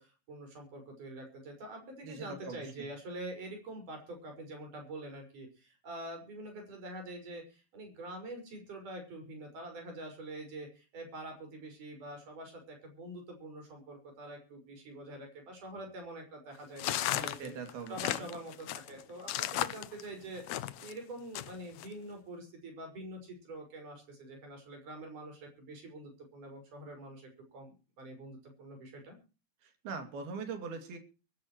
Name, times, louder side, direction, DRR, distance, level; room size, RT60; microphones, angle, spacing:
voice 1, 0.0-17.5 17.9-20.4 20.8-29.2, right 1 dB, 55° right, 4 dB, 7.3 m, -45 dB
voice 2, 2.0-2.6 17.1-18.2 29.8-31.0, right 4 dB, 85° right, 6 dB, 4.7 m, -41 dB
sound 1, 16.8-20.9 21.3-21.9, left 13 dB, 90° left, 1.5 m, -35 dB
23.5 x 13.0 x 3.1 m, 0.33 s
omnidirectional pair, 4.3 m